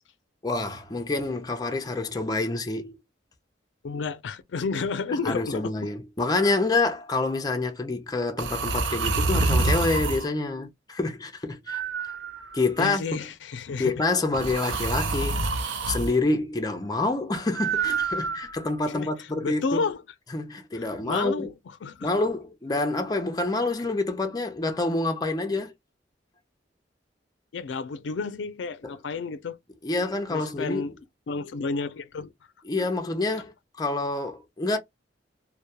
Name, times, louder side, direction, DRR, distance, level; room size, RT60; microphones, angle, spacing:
voice 1, 0.4-3.0 5.2-12.1 12.5-13.2 13.8-15.4 15.9-19.8 20.3-21.5 22.0-25.7 28.8-28.9 29.8-30.9 32.7-34.8, left 2 dB, 20° left, 0.4 m, -27 dB
voice 2, 3.8-5.7 12.8-14.0 18.9-20.0 20.7-22.1 27.5-29.6 30.3-30.9 31.3-32.3, left 4 dB, 85° left, 0.4 m, -31 dB
sound 1, 6.4-6.7 8.4-10.3 11.7-12.8 14.3-16.1 17.5-18.7, right 3 dB, 85° right, 0.5 m, -27 dB
2.2 x 2.1 x 2.8 m
head